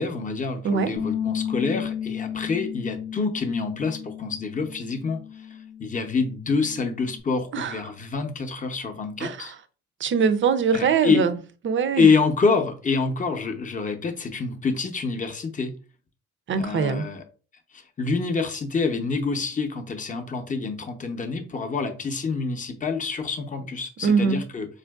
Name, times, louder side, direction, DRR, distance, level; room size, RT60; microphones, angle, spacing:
voice 1, 0.0-9.5 10.7-11.2 12.0-15.7 16.6-17.2 17.7-24.7, left 4 dB, 25° left, 0.7 m, -26 dB
voice 2, 0.6-1.0 7.5-7.8 9.2-9.5 10.0-11.4 11.6-12.1 16.5-17.1 24.0-24.5, right 6 dB, 40° right, 0.5 m, -22 dB
Bass guitar, 1.0-7.2, left 9 dB, 85° left, 0.7 m, -33 dB
4.3 x 2.5 x 2.3 m
cardioid pair, 90°, 30 cm